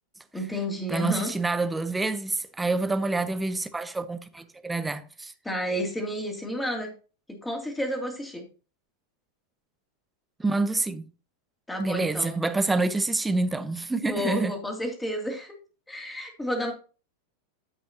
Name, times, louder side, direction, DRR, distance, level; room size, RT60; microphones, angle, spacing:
voice 1, 0.3-1.3 5.4-6.9 7.4-8.4 11.7-12.4 14.0-15.5 15.9-16.7, equal, 5° left, 2.5 m, -31 dB
voice 2, 0.9-5.3 10.4-11.0 11.8-14.5, right 3 dB, 10° right, 0.8 m, -27 dB
13.5 x 5.5 x 2.8 m
figure-of-eight pair, 90°, 0 cm